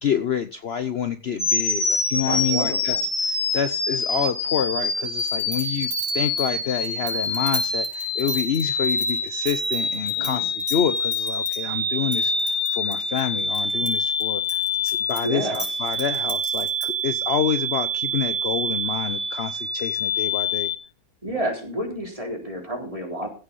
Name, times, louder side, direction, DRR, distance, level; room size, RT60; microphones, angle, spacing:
voice 1, 0.0-3.0 3.2-20.7, left 8 dB, 60° left, 10 dB, 0.6 m, -28 dB
sound 1, 1.4-20.8, left 2 dB, 35° left, 2.5 m, -26 dB
voice 2, 2.2-3.0 10.2-10.5 15.2-15.6 21.2-23.3, right 1 dB, 15° right, 1 dB, 3.9 m, -30 dB
sound 2, 5.2-10.3 10.6-11.6 12.1-13.9 14.2-17.0, right 1 dB, 35° right, 6.1 m, -34 dB
16.0 x 7.0 x 5.4 m, 0.35 s
omnidirectional pair, 2.1 m